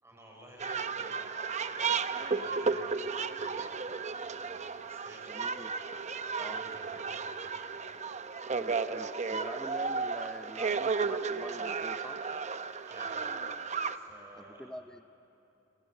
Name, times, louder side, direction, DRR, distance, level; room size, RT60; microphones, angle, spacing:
voice 1, 0.0-3.8 4.2-5.5 6.2-7.5 12.8-13.4 13.8-14.7, right 1 dB, 15° right, -1 dB, 6.4 m, -54 dB
sound 1, 0.6-14.0, right 5 dB, 35° right, 0.8 m, -34 dB
voice 2, 5.3-5.7 6.4-6.6 8.4-12.3 14.6-15.0, equal, 5° left, 10 dB, 0.6 m, -45 dB
29.0 x 23.0 x 8.1 m, 3.0 s
head